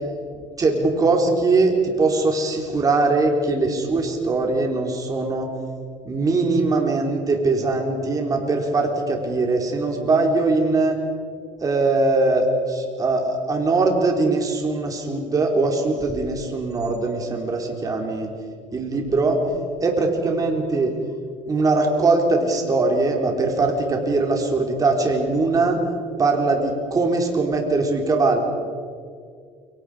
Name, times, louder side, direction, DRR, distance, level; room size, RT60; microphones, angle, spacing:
voice 1, 0.6-5.5 6.1-11.0 11.6-18.3 18.7-19.4 19.8-20.9 21.5-25.8 26.2-28.4, right 3 dB, 25° right, 2 dB, 3.9 m, -21 dB
29.0 x 24.0 x 5.1 m, 2.1 s
cardioid pair, 125°, 13 cm